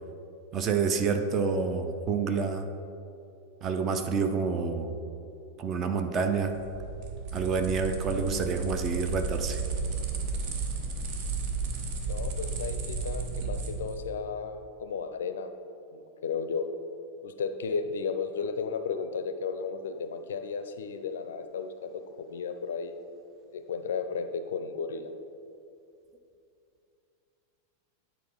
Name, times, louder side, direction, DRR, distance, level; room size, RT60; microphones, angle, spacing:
voice 1, 0.5-2.7 3.6-5.0 5.6-6.6 7.3-9.6, right 5 dB, 30° right, 7 dB, 0.5 m, -28 dB
sound 1, 6.5-14.0, right 4 dB, 45° right, 0.9 m, -33 dB
voice 2, 12.1-15.5 15.9-16.6 17.2-22.9 23.5-25.1, left 5 dB, 60° left, 9 dB, 0.4 m, -34 dB
9.2 x 4.4 x 4.0 m, 2.6 s
figure-of-eight pair, 90°, 0 cm